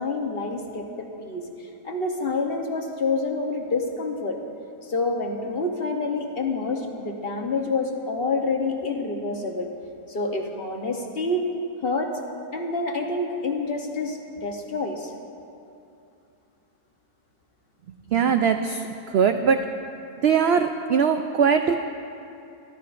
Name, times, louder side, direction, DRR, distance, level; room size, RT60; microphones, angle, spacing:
voice 1, 0.0-1.5 1.8-4.4 4.8-9.7 10.1-11.5 11.8-12.1 12.5-15.1, left 3 dB, 45° left, 2 dB, 1.0 m, -27 dB
voice 2, 18.1-18.9 19.1-19.6 20.2-21.7, right 6 dB, 75° right, 7 dB, 0.6 m, -20 dB
24.0 x 12.0 x 2.5 m, 2.6 s
omnidirectional pair, 1.6 m